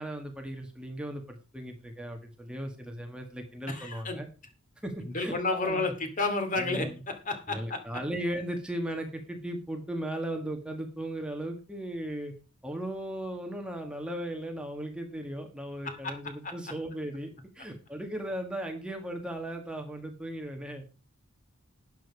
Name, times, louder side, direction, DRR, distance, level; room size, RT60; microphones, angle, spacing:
voice 1, 0.0-4.3 4.8-5.9 6.5-7.0 7.5-12.3 12.6-21.0, right 1 dB, 5° right, 3 dB, 1.9 m, -37 dB
voice 2, 3.7-4.2 5.0-7.8 15.8-16.1 16.4-16.5, left 3 dB, 40° left, 7 dB, 2.5 m, -31 dB
12.5 x 9.2 x 4.8 m, 0.32 s
head